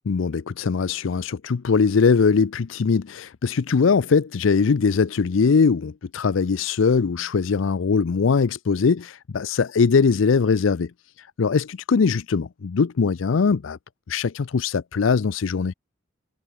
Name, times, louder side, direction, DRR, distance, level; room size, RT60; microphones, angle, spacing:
voice 1, 0.1-10.9 11.4-13.8 14.1-15.7, left 5 dB, 85° left, 0.5 m, -21 dB
head